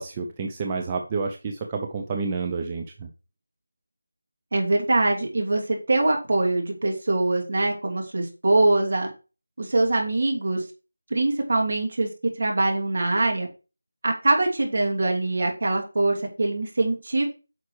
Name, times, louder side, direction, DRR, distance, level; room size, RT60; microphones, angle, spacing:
voice 1, 0.0-3.1, right 4 dB, 20° right, 3 dB, 0.6 m, -29 dB
voice 2, 4.5-9.1 9.6-10.6 11.1-12.1 12.4-13.5 14.0-17.3, right 2 dB, 50° right, 1 dB, 2.7 m, -23 dB
9.4 x 5.9 x 3.2 m, 0.32 s
figure-of-eight pair, 170°, 0 cm